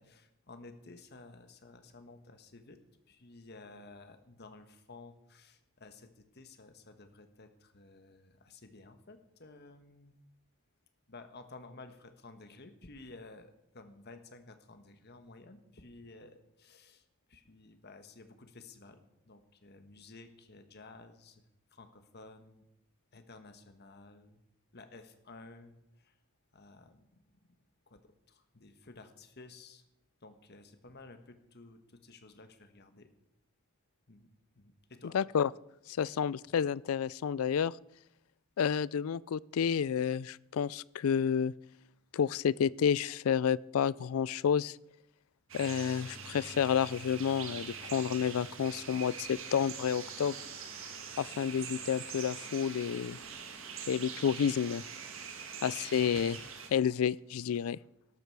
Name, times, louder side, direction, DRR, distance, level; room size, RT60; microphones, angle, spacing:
voice 1, 0.0-2.8 3.1-10.1 11.1-21.4 21.7-22.6 23.1-24.4 24.7-26.1 26.5-27.2 27.9-29.8 30.2-33.1 34.1-34.3 34.5-35.2 56.0-56.3, left 3 dB, 45° left, 8 dB, 1.3 m, -53 dB
voice 2, 35.1-35.5 35.9-37.7 38.6-41.5 42.1-44.8 45.5-50.3 51.2-53.2 53.9-54.8 55.6-56.4 56.7-57.8, left 7 dB, 70° left, 22 dB, 0.3 m, -30 dB
sound 1, 45.5-56.7, right 6 dB, 60° right, 1.7 m, -44 dB
12.5 x 12.0 x 4.7 m, 0.84 s
head